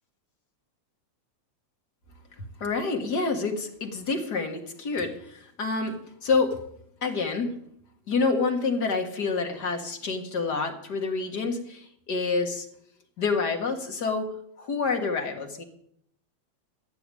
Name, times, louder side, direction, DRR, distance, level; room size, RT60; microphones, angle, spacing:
voice 1, 2.6-6.6 7.0-7.6 8.1-12.7 13.2-15.6, left 4 dB, 40° left, 3 dB, 1.8 m, -28 dB
14.0 x 6.8 x 9.8 m, 0.70 s
omnidirectional pair, 3.3 m